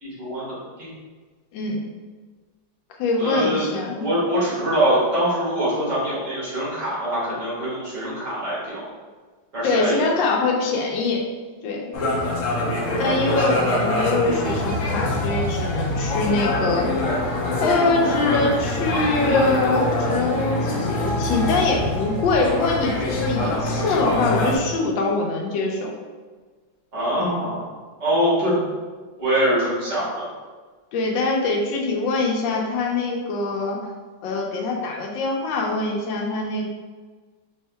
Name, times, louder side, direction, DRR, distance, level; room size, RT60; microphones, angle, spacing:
voice 1, 0.0-0.5 0.8-0.9 3.2-3.7 4.0-8.8 9.5-10.0 12.7-13.4 13.6-13.8 26.9-27.7 28.0-28.6 29.2-30.3, right 1 dB, 40° right, -8 dB, 1.8 m, -24 dB
voice 2, 3.0-4.1 9.6-11.2 11.6-11.8 13.0-17.0 17.6-25.9 27.2-27.5 30.9-33.8 34.2-36.7, left 3 dB, 80° left, 0 dB, 1.4 m, -23 dB
sound 1, 11.9-24.6, left 1 dB, 60° left, 0.8 m, -24 dB
4.5 x 3.5 x 2.2 m, 1.4 s
omnidirectional pair, 2.1 m